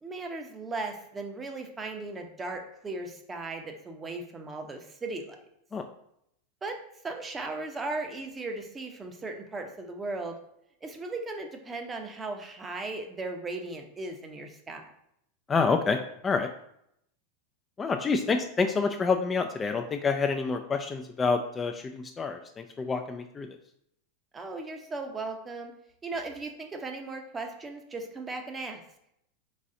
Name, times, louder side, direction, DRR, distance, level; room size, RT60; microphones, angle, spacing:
voice 1, 0.0-5.4 6.6-6.8 7.0-10.4 10.8-14.8 24.3-25.7 26.0-28.8, right 3 dB, 20° right, 4 dB, 0.7 m, -37 dB
voice 2, 15.5-16.5 17.8-23.5, left 4 dB, 20° left, 6 dB, 0.3 m, -28 dB
4.1 x 3.1 x 3.7 m, 0.75 s
hypercardioid pair, 100°, 0 cm